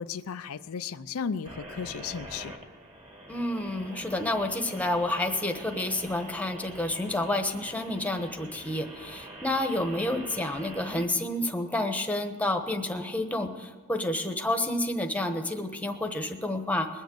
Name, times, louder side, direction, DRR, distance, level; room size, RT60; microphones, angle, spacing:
voice 1, 0.0-2.5, left 6 dB, 90° left, 11 dB, 0.5 m, -35 dB
sound 1, 1.4-11.1, right 1 dB, 25° right, 1.8 m, -45 dB
voice 2, 3.3-16.9, left 1 dB, 5° left, 5 dB, 1.0 m, -29 dB
21.0 x 7.3 x 7.8 m, 1.5 s
head